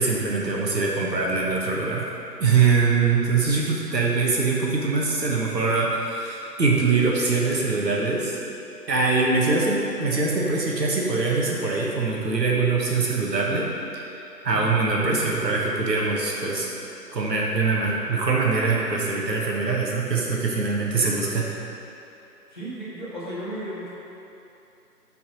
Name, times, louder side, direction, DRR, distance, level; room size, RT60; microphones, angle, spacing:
voice 1, 0.0-2.1 2.4-8.4 8.9-13.7 14.4-16.7 17.1-21.5, right 4 dB, 85° right, -3 dB, 1.4 m, -23 dB
voice 2, 22.5-23.9, equal, 30° left, -11 dB, 1.5 m, -34 dB
5.8 x 4.1 x 5.2 m, 2.9 s
figure-of-eight pair, 180°, 49 cm